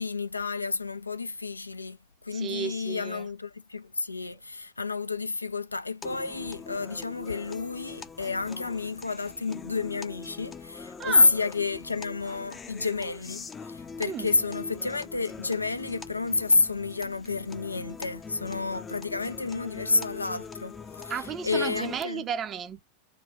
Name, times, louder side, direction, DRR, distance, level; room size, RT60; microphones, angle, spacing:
voice 1, 0.0-2.0 2.2-21.1 21.4-22.3, left 3 dB, 80° left, 0.3 m, -29 dB
voice 2, 2.3-3.3 11.0-11.3 14.0-14.3 21.1-22.8, right 7 dB, 30° right, 0.5 m, -34 dB
sound 1, 6.0-22.0, left 5 dB, 20° left, 0.5 m, -43 dB
3.2 x 2.2 x 3.5 m
figure-of-eight pair, 90°, 0 cm